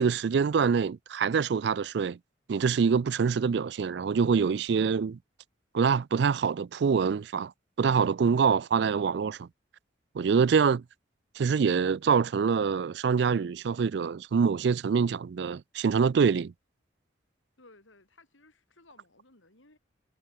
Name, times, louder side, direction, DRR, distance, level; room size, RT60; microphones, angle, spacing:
voice 1, 0.0-2.2 2.5-5.2 5.7-7.5 7.8-9.5 10.2-10.8 11.4-16.5, right 6 dB, 60° right, 0.4 m, -25 dB
voice 2, 17.6-19.8, left 2 dB, 90° left, 5.5 m, -58 dB
head